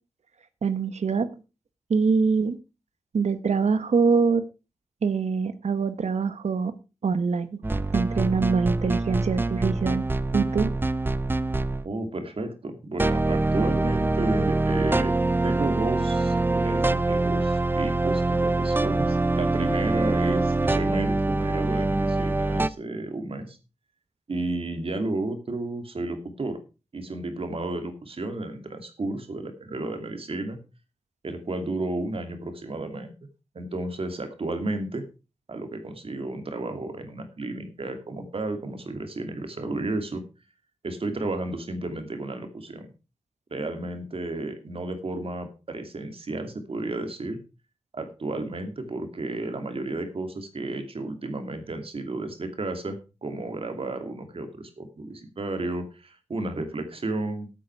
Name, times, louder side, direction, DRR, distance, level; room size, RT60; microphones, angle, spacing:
voice 1, 0.6-1.3 1.9-2.6 3.1-4.4 5.0-6.7 7.0-7.6 7.9-10.1 10.3-10.7, right 5 dB, 80° right, 12 dB, 1.1 m, -24 dB
sound 1, 7.6-11.9 13.0-22.7, right 2 dB, 20° right, 0.5 m, -24 dB
voice 2, 11.8-15.1 15.4-23.6 24.3-26.6 26.9-30.6 31.2-33.1 33.5-35.0 35.5-40.2 40.8-42.9 43.5-47.4 47.9-57.5, right 2 dB, 55° right, 7 dB, 2.7 m, -32 dB
14.5 x 8.6 x 4.7 m, 0.31 s
wide cardioid pair, 125°, 11 cm